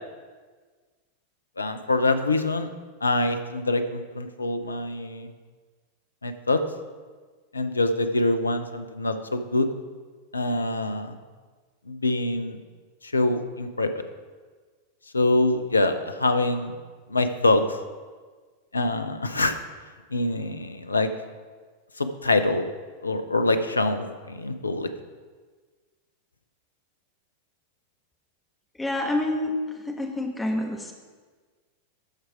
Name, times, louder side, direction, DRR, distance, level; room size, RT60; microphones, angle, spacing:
voice 1, 1.6-2.7 3.0-5.3 6.2-6.6 7.5-9.7 10.3-11.2 11.9-12.6 13.0-13.9 15.1-16.8 17.1-17.8 18.7-19.6 20.1-21.1 22.0-22.6 23.0-24.9, left 2 dB, 80° left, 9 dB, 0.6 m, -25 dB
voice 2, 28.8-30.9, left 1 dB, 5° left, 1 dB, 1.4 m, -28 dB
13.5 x 4.7 x 4.8 m, 1.5 s
figure-of-eight pair, 90°, 0 cm